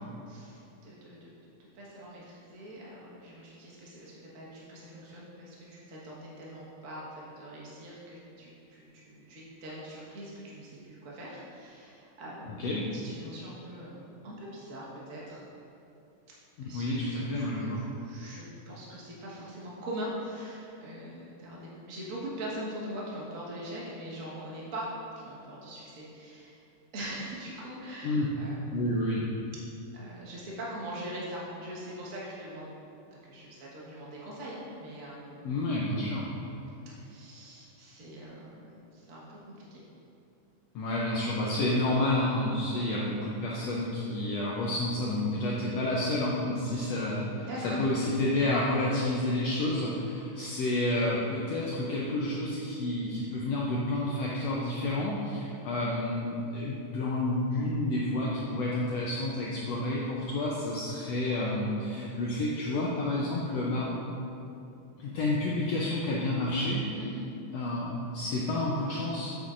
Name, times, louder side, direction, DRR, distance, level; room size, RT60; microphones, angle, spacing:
voice 1, 0.3-12.6 12.9-15.4 16.6-26.6 26.9-29.3 29.9-32.9 33.2-35.5 36.8-39.8 47.4-48.0 66.9-67.3, right 1 dB, 55° right, -6 dB, 0.8 m, -42 dB
voice 2, 16.6-17.8 28.0-28.3 28.7-29.2 35.4-36.3 40.7-63.9 65.0-66.8 67.5-69.3, left 1 dB, 80° left, -4 dB, 1.4 m, -30 dB
8.4 x 7.5 x 2.5 m, 2.9 s
omnidirectional pair, 3.8 m